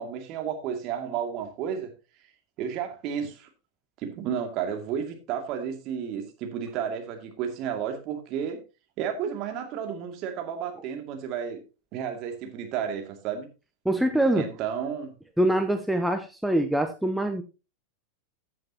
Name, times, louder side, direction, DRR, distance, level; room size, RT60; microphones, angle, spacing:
voice 1, 0.0-1.9 2.6-3.5 4.0-8.6 9.0-11.6 11.9-13.5 14.3-15.1, right 8 dB, 40° right, 2.3 m, -32 dB
voice 2, 13.8-14.5 15.4-17.4, right 1 dB, ahead, 0.7 m, -24 dB
14.5 x 7.6 x 2.9 m
figure-of-eight pair, 90°, 0 cm